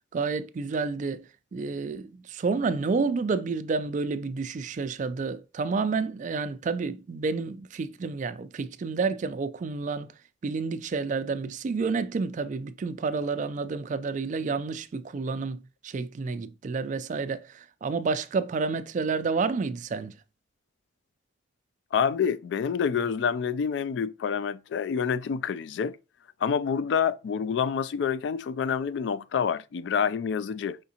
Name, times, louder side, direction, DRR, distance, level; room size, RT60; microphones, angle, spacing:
voice 1, 0.1-10.1 10.4-20.1, right 4 dB, 40° right, 0.3 m, -30 dB
voice 2, 21.9-26.0 26.4-30.8, left 7 dB, 65° left, 0.3 m, -27 dB
4.9 x 3.6 x 2.8 m
head